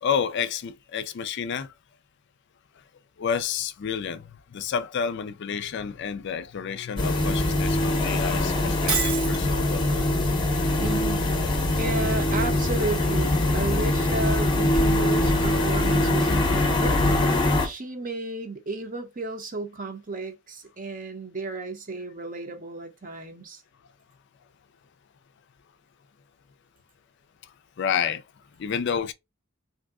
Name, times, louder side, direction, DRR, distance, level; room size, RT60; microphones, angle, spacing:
voice 1, 0.0-1.7 3.2-10.1 27.8-28.2 28.6-29.1, left 7 dB, 55° left, 0.4 m, -30 dB
sound 1, 7.0-17.7, left 1 dB, 20° left, 0.7 m, -23 dB
Shatter, 8.9-9.4, right 4 dB, 80° right, 1.4 m, -26 dB
voice 2, 10.8-11.3 11.8-17.0 17.6-23.6, right 3 dB, 40° right, 0.7 m, -33 dB
3.6 x 2.7 x 2.3 m
head